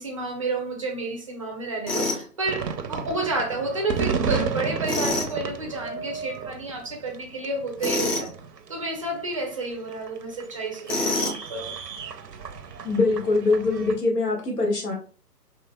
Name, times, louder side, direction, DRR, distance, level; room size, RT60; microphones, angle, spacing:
voice 1, 0.0-8.3 8.7-11.8, right 2 dB, 20° right, 1 dB, 0.6 m, -30 dB
Tools, 1.9-2.2 4.8-5.3 7.8-8.3 10.9-11.5, left 2 dB, 35° left, 2.0 m, -26 dB
sound 1, 2.4-14.0, right 6 dB, 80° right, 0.7 m, -33 dB
voice 2, 12.8-14.9, left 3 dB, 70° left, 1 dB, 1.7 m, -23 dB
4.7 x 3.0 x 2.2 m, 0.39 s
figure-of-eight pair, 135°, 49 cm